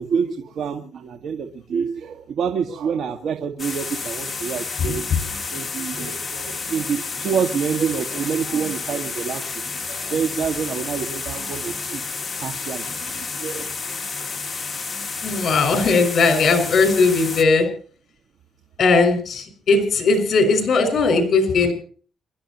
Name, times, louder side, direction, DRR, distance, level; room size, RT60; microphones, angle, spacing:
voice 1, 0.0-5.1 5.5-12.0 12.4-13.7, right 6 dB, 65° right, 3 dB, 2.0 m, -27 dB
sound 1, 3.6-17.4, left 4 dB, 30° left, 2.3 m, -30 dB
voice 2, 15.2-17.7 18.8-21.7, left 3 dB, 55° left, 6 dB, 6.0 m, -18 dB
28.0 x 12.5 x 3.1 m, 0.43 s
cardioid pair, 90°, 0 cm